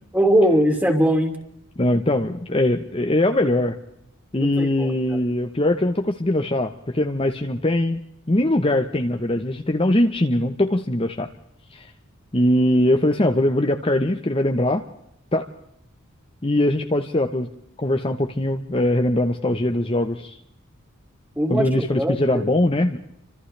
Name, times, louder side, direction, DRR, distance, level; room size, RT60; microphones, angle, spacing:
voice 1, 0.1-1.3 4.4-4.9 21.4-22.4, right 1 dB, 10° right, 3 dB, 2.8 m, -20 dB
voice 2, 1.8-3.8 4.3-8.0 8.3-11.3 11.7-11.9 12.3-14.8 15.3-15.5 16.4-17.5 17.8-20.4 21.5-23.0, left 1 dB, 25° left, 5 dB, 1.0 m, -21 dB
30.0 x 26.0 x 3.4 m, 0.78 s
head